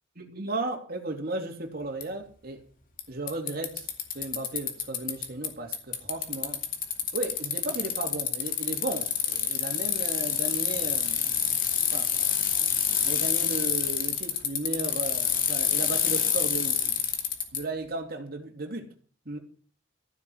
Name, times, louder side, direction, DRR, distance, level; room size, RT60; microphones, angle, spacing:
voice 1, 0.2-2.6 3.1-3.9 4.1-6.6 7.1-11.4 11.9-12.1 13.0-17.0 17.5-18.9 19.2-19.4, right 2 dB, 50° right, 2.9 m, -35 dB
Bicycle, 2.0-2.1 3.0-3.1 3.3-5.5 5.7-17.6, left 8 dB, 45° left, 2.6 m, -27 dB
14.5 x 7.6 x 8.0 m
head